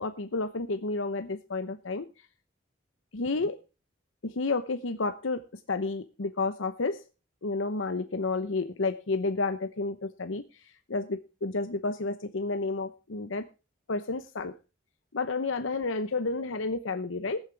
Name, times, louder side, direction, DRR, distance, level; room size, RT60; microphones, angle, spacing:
voice 1, 0.0-2.1 3.1-3.6 4.2-5.4 5.7-7.0 7.4-10.4 10.9-13.5 13.9-14.5 15.1-17.4, left 3 dB, 85° left, 9 dB, 0.8 m, -31 dB
20.5 x 7.3 x 3.4 m, 0.32 s
head